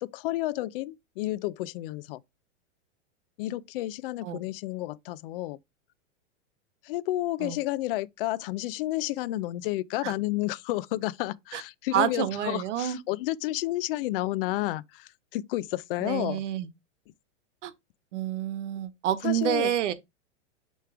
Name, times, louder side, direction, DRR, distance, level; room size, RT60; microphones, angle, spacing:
voice 1, 0.0-2.2 3.4-5.6 6.8-16.4 19.2-19.7, left 16 dB, 50° left, 0.5 m, -31 dB
voice 2, 11.9-13.0 16.0-16.7 17.6-17.7 18.1-19.9, right 11 dB, 70° right, 1.1 m, -28 dB
6.5 x 3.2 x 4.9 m
hypercardioid pair, 140°, 37 cm